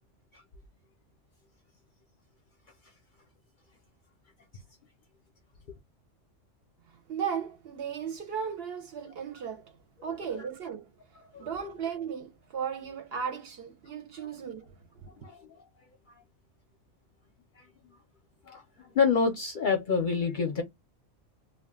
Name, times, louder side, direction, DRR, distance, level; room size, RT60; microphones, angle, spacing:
voice 1, 7.1-9.8 10.0-10.9 11.4-15.3, right 7 dB, 60° right, 0.7 m, -36 dB
voice 2, 15.2-15.6 17.6-17.7 18.5-20.6, left 5 dB, 55° left, 0.6 m, -28 dB
2.3 x 2.1 x 3.5 m
omnidirectional pair, 1.3 m